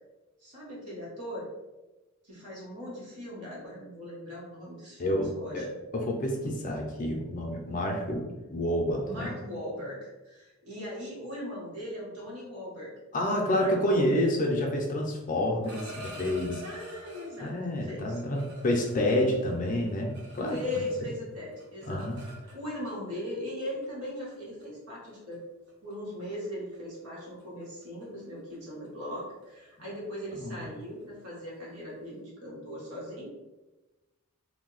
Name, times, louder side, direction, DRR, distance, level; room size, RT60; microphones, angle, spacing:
voice 1, 0.4-1.5 2.2-5.6 9.1-12.9 13.3-14.2 16.6-18.2 20.5-22.1 22.5-25.4 25.8-33.3, left 1 dB, 85° right, -6 dB, 1.5 m, -39 dB
voice 2, 5.0-5.7 5.9-9.3 13.1-16.6 17.4-20.8 21.8-22.2 30.4-30.6, left 1 dB, 35° left, 1 dB, 0.5 m, -29 dB
sound 1, 15.6-17.6 18.1-21.1 21.4-22.9 23.8-24.0 24.3-24.6 25.1-25.3 25.7-25.9 26.2-26.5 26.7-32.1, equal, 50° right, 0.8 m, -48 dB
2.7 x 2.2 x 3.8 m, 1.1 s
head